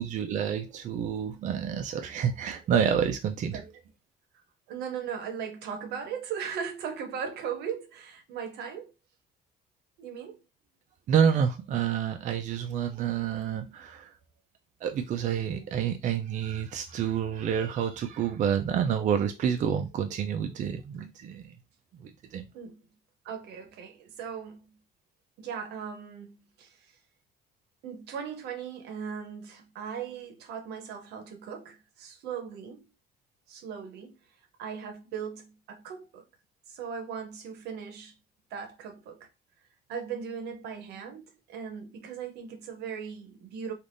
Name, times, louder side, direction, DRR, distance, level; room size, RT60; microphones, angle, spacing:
voice 1, 0.0-3.6 11.1-14.1 14.8-21.5 22.0-22.4, right 8 dB, 50° right, 0.4 m, -28 dB
voice 2, 4.7-8.9 10.0-10.4 22.5-22.8 23.2-24.6 25.4-26.8 27.8-32.8 33.5-34.1 34.6-36.2 36.7-38.1 38.5-39.3 39.9-43.7, right 7 dB, 80° right, 0.8 m, -38 dB
3.3 x 2.4 x 2.5 m
cardioid pair, 110°, 17 cm